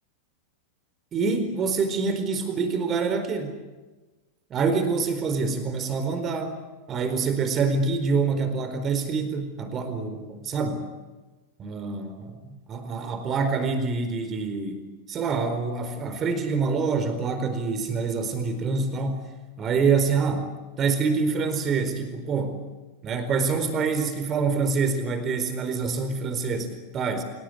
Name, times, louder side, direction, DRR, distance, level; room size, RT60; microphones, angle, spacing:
voice 1, 1.1-3.6 4.5-10.8 11.6-19.3 19.6-20.5 20.8-22.6 23.0-27.2, right 4 dB, 30° right, 9 dB, 4.4 m, -26 dB
28.5 x 18.5 x 10.0 m, 1.2 s
figure-of-eight pair, 90°, 0 cm